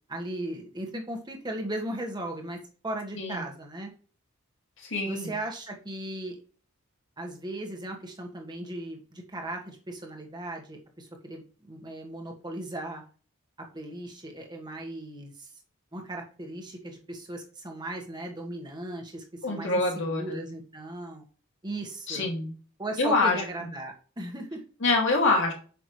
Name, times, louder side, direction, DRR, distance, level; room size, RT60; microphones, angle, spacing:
voice 1, 0.1-3.9 5.0-6.4 7.2-13.0 13.6-15.5 15.9-21.2 21.6-22.3 22.8-24.6, right 1 dB, 20° right, 2 dB, 1.5 m, -37 dB
voice 2, 4.8-5.3 19.4-20.4 22.1-22.5 23.0-23.4 24.8-25.5, left 3 dB, 60° left, 0 dB, 2.2 m, -25 dB
8.3 x 6.0 x 3.2 m, 0.40 s
head